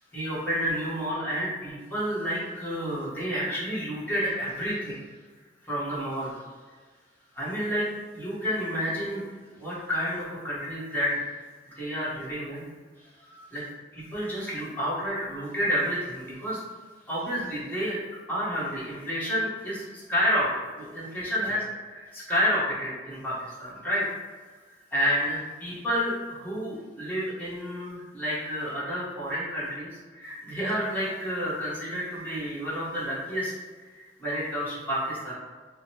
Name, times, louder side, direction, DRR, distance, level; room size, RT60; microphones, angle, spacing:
voice 1, 0.1-5.0 5.6-6.4 7.3-7.9 8.1-9.2 9.5-11.2 11.7-12.6 13.2-13.6 13.9-16.6 17.1-24.0 24.9-33.5 33.9-35.3, equal, 10° left, -9 dB, 1.2 m, -30 dB
5.0 x 2.1 x 2.8 m, 1.4 s
head